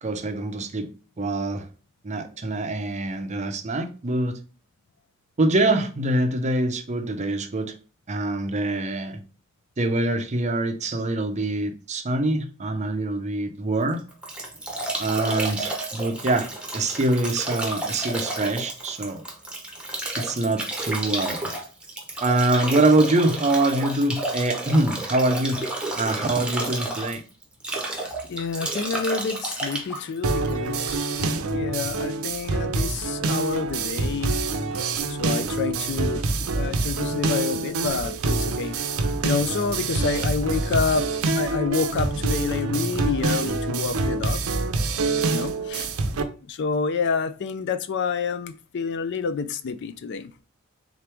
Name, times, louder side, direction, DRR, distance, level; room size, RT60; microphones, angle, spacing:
voice 1, 0.0-0.9 1.2-1.6 2.0-4.4 5.4-7.7 8.1-9.2 9.8-14.0 15.0-16.5 16.7-19.2 20.2-21.4 22.2-25.6 26.0-27.2, right 2 dB, 30° right, 0.5 m, -24 dB
Bathtub (filling or washing) / Drip / Trickle dribble, 13.8-31.0, right 2 dB, 5° right, 0.9 m, -31 dB
voice 2, 28.3-34.4 35.1-38.8 39.2-41.1 41.4-44.4 45.3-45.9 46.5-50.3, left 5 dB, 55° left, 0.4 m, -28 dB
sound 1, 30.2-46.2, right 3 dB, 75° right, 0.6 m, -26 dB
3.8 x 3.0 x 3.3 m
head